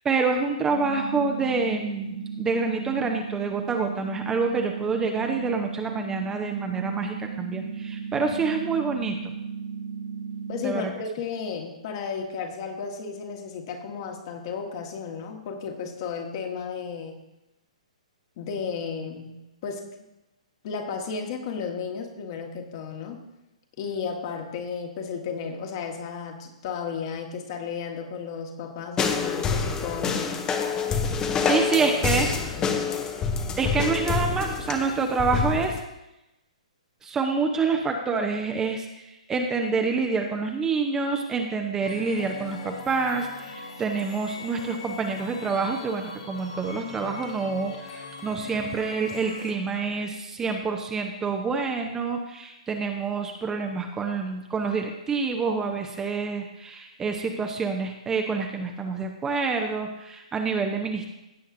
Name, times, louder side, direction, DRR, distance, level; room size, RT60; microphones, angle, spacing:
voice 1, 0.0-9.4 10.6-10.9 31.4-32.3 33.6-35.8 37.0-61.1, right 4 dB, 15° right, 3 dB, 0.8 m, -27 dB
sound 1, 0.7-10.7, right 6 dB, 75° right, 1.2 m, -35 dB
voice 2, 10.5-17.2 18.4-19.3 19.6-19.8 20.6-23.2 23.8-30.4 31.4-32.9, left 6 dB, 40° left, 2 dB, 1.7 m, -34 dB
sound 2, 29.0-35.8, left 5 dB, 15° left, 0.8 m, -27 dB
sound 3, 41.8-49.5, left 3 dB, 60° left, 2.2 m, -41 dB
16.0 x 8.0 x 2.7 m, 0.94 s
figure-of-eight pair, 125°, 4 cm